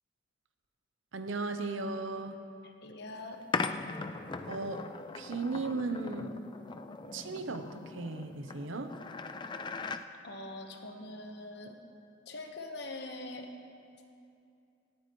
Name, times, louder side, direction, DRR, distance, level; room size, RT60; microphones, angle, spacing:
voice 1, 1.1-2.4 4.5-4.9 5.1-6.4 7.1-9.0, right 3 dB, 75° right, 8 dB, 0.8 m, -36 dB
voice 2, 2.6-3.4 10.2-11.8 12.2-13.5, left 2 dB, 55° left, 3 dB, 1.2 m, -43 dB
sound 1, 3.5-10.0, left 4 dB, 25° left, 0.3 m, -39 dB
18.0 x 14.0 x 3.1 m, 2.5 s
head